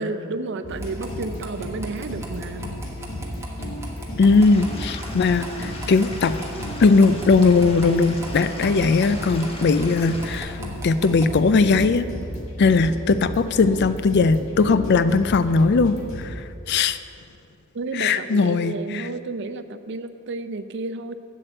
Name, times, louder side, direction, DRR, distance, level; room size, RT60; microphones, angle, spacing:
voice 1, 0.0-2.6 17.7-21.1, right 3 dB, 60° right, 11 dB, 0.5 m, -31 dB
sound 1, 0.6-16.3, left 1 dB, 75° left, 1.8 m, -34 dB
sound 2, 0.7-11.4, right 2 dB, 15° right, 1.3 m, -41 dB
voice 2, 4.2-6.3 6.8-10.6 10.8-12.1 12.6-16.3 16.7-17.0 18.0-19.1, left 4 dB, 55° left, 13 dB, 0.4 m, -19 dB
Stream / Liquid, 4.4-10.4, left 1 dB, 30° left, 1.2 m, -39 dB
7.7 x 7.6 x 7.7 m, 2.5 s
head